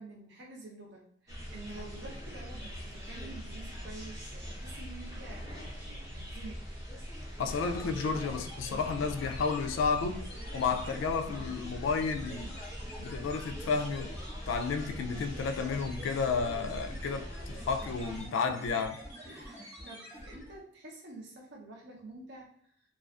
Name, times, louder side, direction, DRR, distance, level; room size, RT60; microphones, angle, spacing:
voice 1, 0.0-6.6 19.2-22.5, right 2 dB, 60° right, 0.7 m, -48 dB
sound 1, 1.3-18.2, equal, 15° right, 0.7 m, -42 dB
voice 2, 7.4-12.6 13.0-14.1 14.5-19.0, left 5 dB, 85° left, 0.3 m, -32 dB
sound 2, 7.5-20.6, equal, 10° left, 0.9 m, -46 dB
2.3 x 2.3 x 2.3 m
head